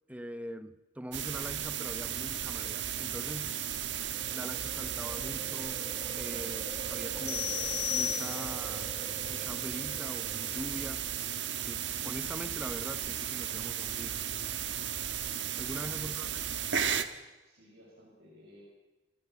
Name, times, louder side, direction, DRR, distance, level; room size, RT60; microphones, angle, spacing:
voice 1, 0.1-3.6 4.3-5.8 6.1-7.5 7.9-8.9 9.3-11.1 11.6-14.2 15.6-16.6, equal, 5° right, 11 dB, 1.0 m, -43 dB
sound 1, 1.1-17.0, right 9 dB, 65° right, 1.4 m, -35 dB
sound 2, 3.9-11.5, right 1 dB, 25° right, 3.8 m, -47 dB
sound 3, 7.3-8.8, left 13 dB, 55° left, 1.9 m, -34 dB
voice 2, 15.9-16.5 17.4-18.6, left 1 dB, 85° right, -5 dB, 7.0 m, -58 dB
27.0 x 16.0 x 8.2 m, 1.2 s
head